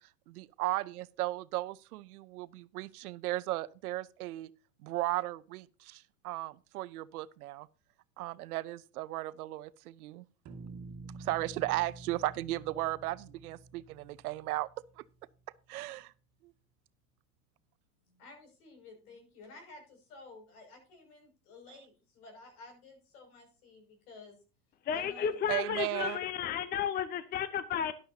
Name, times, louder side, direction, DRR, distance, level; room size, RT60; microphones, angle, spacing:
voice 1, 0.3-4.5 4.8-7.7 8.2-10.2 11.2-14.7 15.0-15.1 15.7-16.1 16.4-16.5 25.5-26.2, right 17 dB, 70° right, 0.8 m, -36 dB
sound 1, 10.5-15.4, right 3 dB, 35° right, 2.2 m, -49 dB
voice 2, 18.1-24.4 24.9-25.3, left 3 dB, 70° left, 6.3 m, -53 dB
voice 3, 24.9-27.9, left 8 dB, 20° left, 0.6 m, -33 dB
12.5 x 11.5 x 2.8 m
hypercardioid pair, 110°, 46 cm